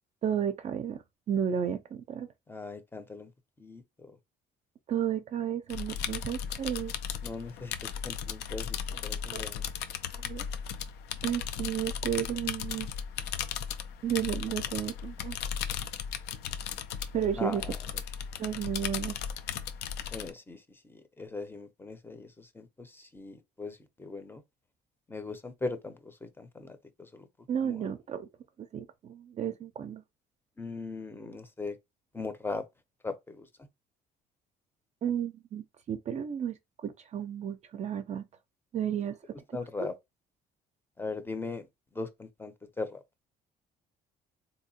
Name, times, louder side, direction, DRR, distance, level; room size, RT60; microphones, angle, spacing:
voice 1, 0.2-1.0 1.3-2.3 4.9-6.9 9.3-9.4 10.1-10.4 11.2-12.9 14.0-15.4 17.1-17.6 18.4-19.2 27.5-28.3 28.7-30.0 35.0-38.3 38.7-39.2 39.5-39.9, right 9 dB, 40° right, 0.4 m, -32 dB
voice 2, 2.5-3.3 3.6-3.8 7.2-7.7 8.0-8.8 9.0-9.7 17.4-17.8 20.1-24.4 25.1-27.3 27.6-27.8 30.6-31.8 32.1-32.6 33.0-33.5 39.5-39.9 41.0-41.7 41.9-43.0, left 3 dB, 15° left, 0.6 m, -39 dB
sound 1, 5.7-20.3, left 8 dB, 85° left, 0.5 m, -36 dB
3.6 x 2.7 x 2.7 m
cardioid pair, 110°, 17 cm